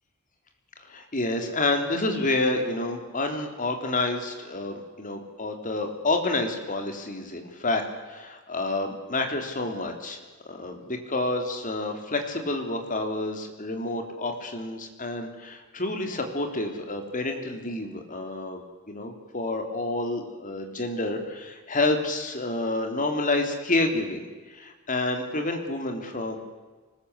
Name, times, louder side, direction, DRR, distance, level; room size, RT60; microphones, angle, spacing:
voice 1, 0.9-10.2 10.4-26.4, left 2 dB, 40° left, 5 dB, 3.4 m, -29 dB
24.0 x 20.0 x 8.2 m, 1.3 s
head